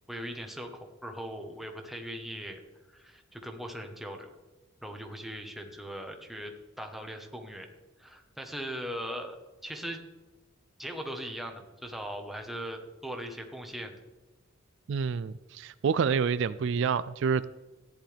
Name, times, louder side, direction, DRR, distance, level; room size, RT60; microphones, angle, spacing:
voice 1, 0.1-0.7 1.0-2.6 2.9-4.3 4.8-7.7 8.0-9.4 9.6-10.0 10.8-14.0, equal, ahead, 3 dB, 1.1 m, -39 dB
voice 2, 14.9-17.4, right 6 dB, 60° right, 15 dB, 0.3 m, -28 dB
14.5 x 10.0 x 3.4 m, 1.2 s
head